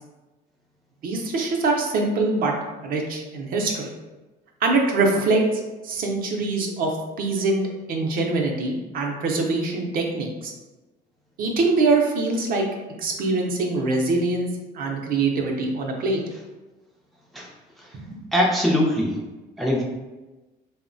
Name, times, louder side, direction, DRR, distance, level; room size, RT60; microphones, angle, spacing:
voice 1, 1.0-2.5 2.8-3.9 4.6-5.4 5.8-7.6 7.9-10.5 11.4-12.7 13.0-14.5 14.7-16.2 18.1-18.2, right 3 dB, 60° right, 1 dB, 0.5 m, -23 dB
voice 2, 18.3-19.1 19.6-19.8, left 1 dB, ahead, -2 dB, 0.4 m, -21 dB
2.8 x 2.0 x 2.5 m, 1.1 s
cardioid pair, 110°, 17 cm